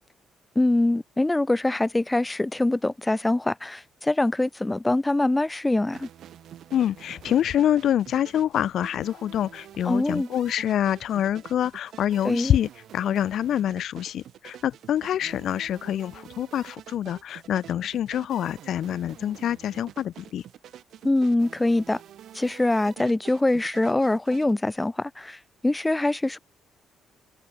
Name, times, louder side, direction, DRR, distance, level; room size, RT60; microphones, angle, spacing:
voice 1, 0.5-6.1 9.8-10.3 12.2-12.6 21.0-22.0 22.3-26.4, left 2 dB, 15° left, 1.1 m, -24 dB
sound 1, 5.9-24.5, right 11 dB, 70° right, 1.8 m, -47 dB
voice 2, 6.7-20.4, left 10 dB, 70° left, 0.3 m, -26 dB
cardioid pair, 80°, 0 cm